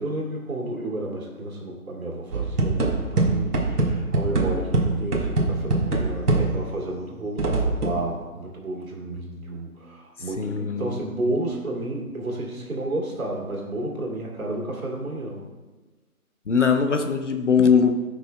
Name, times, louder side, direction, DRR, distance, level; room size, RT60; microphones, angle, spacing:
voice 1, 0.0-15.4, right 1 dB, 65° right, -2 dB, 2.6 m, -31 dB
sound 1, 2.3-6.8 7.4-8.1, right 2 dB, 90° right, 1.6 m, -23 dB
voice 2, 10.4-11.0 16.5-17.9, left 6 dB, 55° left, 6 dB, 0.7 m, -20 dB
14.0 x 6.0 x 2.2 m, 1.2 s
hypercardioid pair, 175°, 44 cm